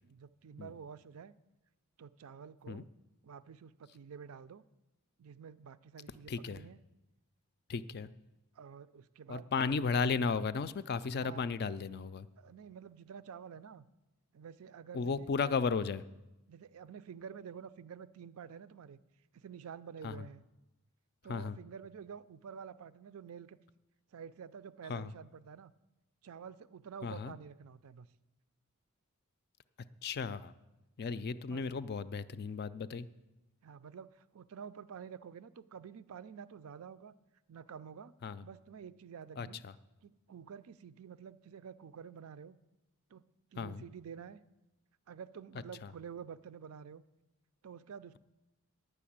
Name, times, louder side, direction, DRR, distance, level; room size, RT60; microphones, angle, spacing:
voice 1, 0.0-1.3 2.0-2.9 3.2-4.6 5.2-6.8 8.5-9.6 11.1-11.5 12.4-13.9 14.3-15.3 16.5-19.0 19.3-20.4 21.2-23.6 24.1-25.7 26.2-28.1 31.5-31.7 33.6-37.1 37.5-38.1 38.4-39.6 40.0-42.6 43.1-43.2 43.5-44.4 45.1-47.0 47.6-48.2, right 7 dB, 75° right, 14 dB, 0.4 m, -49 dB
voice 2, 6.3-6.6 7.7-8.1 9.3-12.3 14.9-16.0 20.0-20.2 21.3-21.6 24.9-25.1 27.0-27.4 30.0-30.5 31.0-33.1 38.2-38.4 39.4-39.7 43.6-43.8 45.8-45.9, left 5 dB, 45° left, 15 dB, 0.4 m, -34 dB
9.9 x 6.7 x 8.6 m, 1.0 s
head